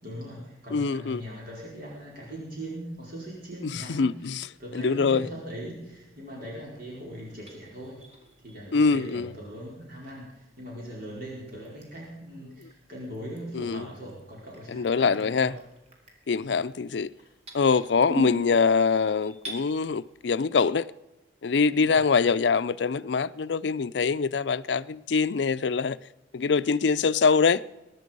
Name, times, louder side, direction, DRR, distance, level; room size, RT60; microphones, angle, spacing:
voice 1, 0.0-8.0 8.4-15.5 16.3-16.4 18.1-18.3 21.7-22.0, equal, 55° right, 5.0 m, -40 dB
voice 2, 0.7-1.2 3.6-4.5 4.7-5.3 8.7-9.3 13.5-13.9 14.7-15.5 16.3-17.1 17.5-20.9 21.4-26.0 26.3-27.6, left 5 dB, 70° left, 0.5 m, -24 dB
sound 1, 1.1-20.3, right 1 dB, 35° right, 3.5 m, -53 dB
22.5 x 11.0 x 5.4 m
head